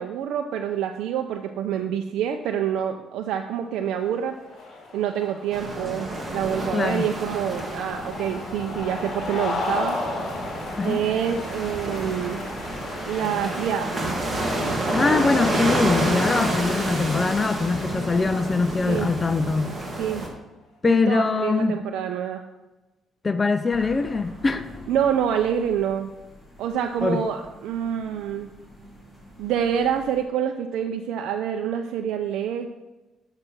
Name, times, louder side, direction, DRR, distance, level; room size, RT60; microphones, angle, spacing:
voice 1, 0.0-4.3 4.9-10.0 10.8-12.4 13.1-13.9 18.8-19.1 20.0-20.2 20.9-22.4 24.9-26.1 26.6-28.5 29.4-32.7, right 9 dB, 85° right, 0.5 m, -27 dB
sound 1, 3.9-19.6, left 2 dB, 50° left, 2.3 m, -36 dB
sound 2, 5.5-20.3, right 1 dB, 20° right, 1.8 m, -29 dB
voice 2, 6.7-7.0 10.8-11.0 14.9-19.7 20.8-21.8 23.2-24.7 27.0-27.2, left 3 dB, 25° left, 0.4 m, -22 dB
sound 3, 23.7-30.2, left 1 dB, 5° left, 2.2 m, -47 dB
6.6 x 6.1 x 6.0 m
cardioid pair, 110°, 0 cm